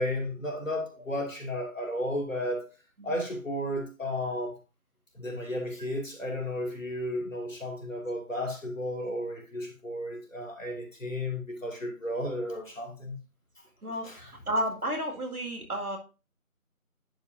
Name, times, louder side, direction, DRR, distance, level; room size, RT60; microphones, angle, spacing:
voice 1, 0.0-2.6 3.0-4.6 5.1-13.2 14.0-14.2, left 1 dB, 60° left, 2 dB, 2.5 m, -33 dB
voice 2, 13.8-16.0, equal, 75° right, 2 dB, 2.2 m, -32 dB
10.5 x 5.4 x 2.6 m, 0.32 s
figure-of-eight pair, 180°, 44 cm